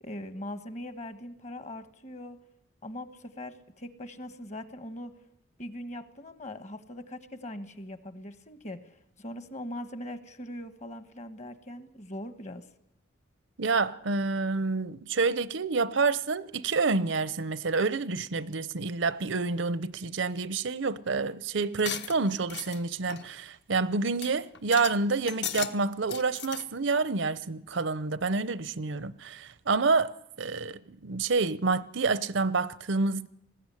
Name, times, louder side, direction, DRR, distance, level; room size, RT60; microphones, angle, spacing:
voice 1, 0.0-2.4 2.8-5.1 5.6-12.6, left 1 dB, 35° left, 1.3 m, -41 dB
voice 2, 13.6-30.1 30.4-33.3, right 4 dB, 70° right, 0.7 m, -28 dB
sound 1, 21.8-22.8 23.1-23.3 23.7-23.8 24.2-24.3 24.5-24.9 25.3-25.7 26.0-26.6, left 9 dB, 60° left, 1.3 m, -36 dB
20.0 x 15.5 x 10.0 m
head